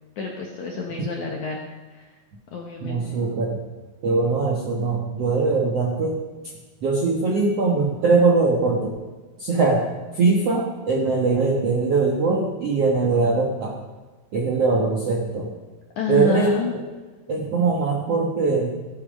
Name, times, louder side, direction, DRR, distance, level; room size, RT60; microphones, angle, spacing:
voice 1, 0.2-1.6 1.9-2.1 2.5-3.4 16.0-16.7, left 4 dB, 65° left, 0 dB, 1.9 m, -29 dB
voice 2, 2.8-3.6 4.0-6.2 6.8-8.9 9.4-9.8 10.1-13.7 14.3-15.5 16.1-16.6 17.3-18.7, right 3 dB, 65° right, -2 dB, 1.5 m, -21 dB
15.5 x 11.5 x 5.3 m, 1.3 s
omnidirectional pair, 5.0 m